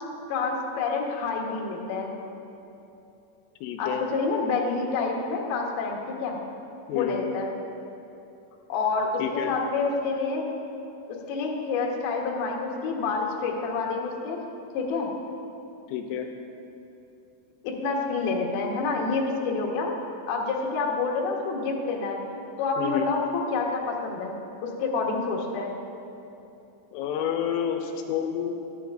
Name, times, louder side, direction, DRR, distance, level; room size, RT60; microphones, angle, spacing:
voice 1, 0.3-2.1 3.8-6.4 6.9-7.5 8.7-10.5 11.3-14.4 14.7-15.1 17.6-22.2 22.6-24.3 24.6-25.7, left 4 dB, 70° left, -1 dB, 2.5 m, -28 dB
voice 2, 3.6-4.0 6.9-7.2 9.2-9.5 15.9-16.3 22.8-23.1 26.9-28.5, left 9 dB, 90° left, 4 dB, 3.2 m, -29 dB
23.0 x 7.9 x 2.5 m, 2.9 s
omnidirectional pair, 5.7 m